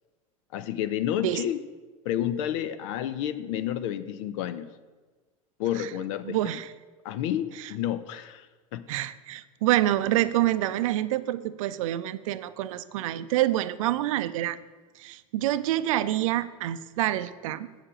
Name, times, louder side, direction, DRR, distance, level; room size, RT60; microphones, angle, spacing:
voice 1, 0.5-1.6 2.0-4.7 5.6-6.6 7.0-8.5 8.7-8.8, left 11 dB, 60° left, 14 dB, 0.6 m, -30 dB
voice 2, 6.2-6.7 7.6-7.7 8.9-14.6 15.0-17.7, right 14 dB, 65° right, 14 dB, 0.5 m, -27 dB
7.6 x 6.7 x 6.3 m, 1.3 s
hypercardioid pair, 80°, 18 cm